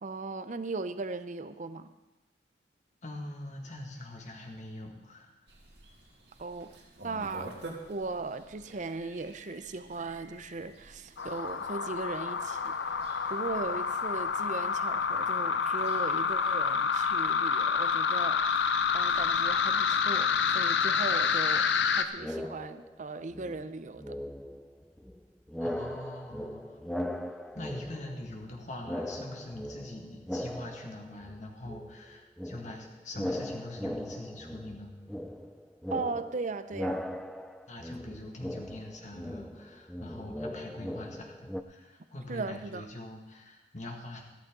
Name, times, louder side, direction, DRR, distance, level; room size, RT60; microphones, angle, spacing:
voice 1, 0.0-1.9 6.4-6.7 7.0-7.6 7.9-13.0 13.3-21.7 22.0-24.2 35.9-37.1 42.3-42.8, right 3 dB, 45° right, 12 dB, 0.6 m, -38 dB
voice 2, 3.0-5.3 25.6-26.8 27.6-34.9 37.7-44.2, left 1 dB, 45° left, 1 dB, 2.0 m, -43 dB
sound 1, 5.5-20.5, right 2 dB, 75° right, 2.3 m, -51 dB
sound 2, 11.2-22.0, left 6 dB, 80° left, 0.7 m, -28 dB
sound 3, 22.2-23.0 23.3-25.2 25.5-28.5 28.8-31.4 31.6-41.6, equal, ahead, 0.5 m, -39 dB
14.5 x 13.0 x 3.8 m, 1.0 s
head